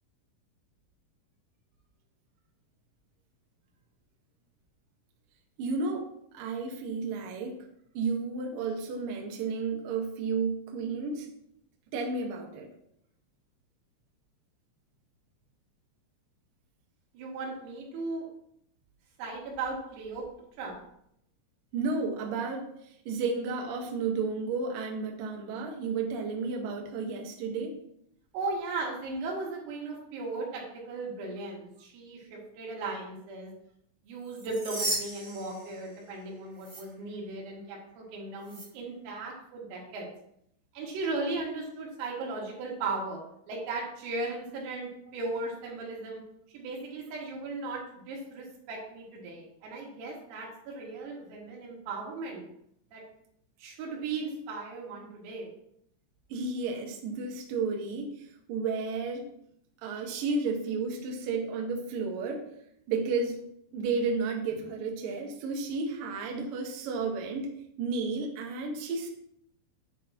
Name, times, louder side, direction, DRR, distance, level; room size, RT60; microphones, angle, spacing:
voice 1, 5.6-6.1 6.3-7.6 7.9-11.3 11.9-12.7 21.7-27.8 56.3-59.3 59.8-62.4 62.9-63.4 63.7-67.5 67.8-69.1, right 4 dB, 65° right, 1 dB, 2.2 m, -32 dB
voice 2, 17.1-18.3 19.2-20.3 20.6-20.8 28.3-33.5 34.0-40.1 40.7-43.2 43.5-46.2 46.5-52.4 52.9-53.0 53.6-55.5, right 3 dB, 85° right, -2 dB, 5.0 m, -37 dB
sound 1, 34.2-36.2 36.6-36.8 38.4-38.7, right 2 dB, 20° right, 2.9 m, -36 dB
10.5 x 9.9 x 3.0 m, 0.74 s
omnidirectional pair, 6.0 m